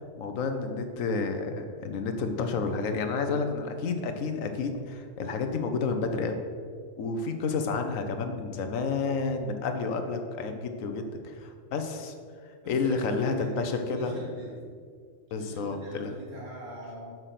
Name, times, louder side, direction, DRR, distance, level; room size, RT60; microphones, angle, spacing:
voice 1, 0.2-6.4 7.0-12.1 12.7-14.2 15.3-16.1, left 4 dB, 85° left, 6 dB, 1.2 m, -30 dB
voice 2, 12.6-13.6 13.9-14.7 15.4-17.2, equal, 75° right, -5 dB, 2.7 m, -42 dB
6.6 x 6.2 x 5.7 m, 2.1 s
omnidirectional pair, 1.3 m